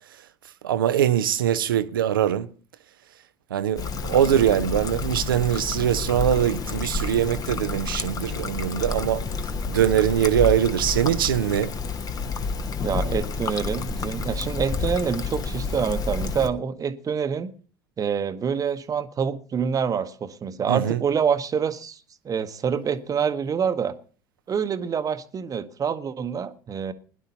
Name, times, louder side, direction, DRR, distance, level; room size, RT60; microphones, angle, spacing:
voice 1, 0.6-2.5 3.5-9.2 9.7-11.7 20.7-21.0, right 10 dB, 70° right, 0.7 m, -22 dB
Trickle dribble, 3.8-16.5, left 4 dB, 30° left, 1.1 m, -29 dB
voice 2, 12.8-17.5 18.0-22.0 22.2-23.9 24.5-26.9, right 7 dB, 30° right, 1.1 m, -26 dB
21.5 x 11.0 x 2.8 m
figure-of-eight pair, 65°, 12 cm